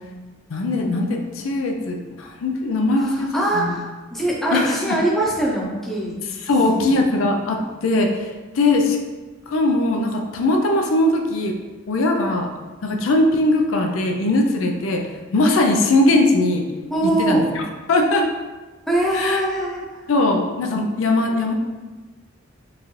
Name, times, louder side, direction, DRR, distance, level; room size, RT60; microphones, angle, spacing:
voice 1, 0.5-3.7 4.5-5.0 6.4-9.0 9.5-11.5 11.9-12.5 12.8-15.1 15.3-16.7 17.0-17.6 17.9-18.3 19.1-19.4 20.1-21.5, left 2 dB, 85° left, 2 dB, 0.5 m, -20 dB
voice 2, 3.0-6.1 6.4-7.0 16.9-17.4 18.9-19.8, right 1 dB, ahead, -5 dB, 0.7 m, -23 dB
4.5 x 2.5 x 3.1 m, 1.3 s
head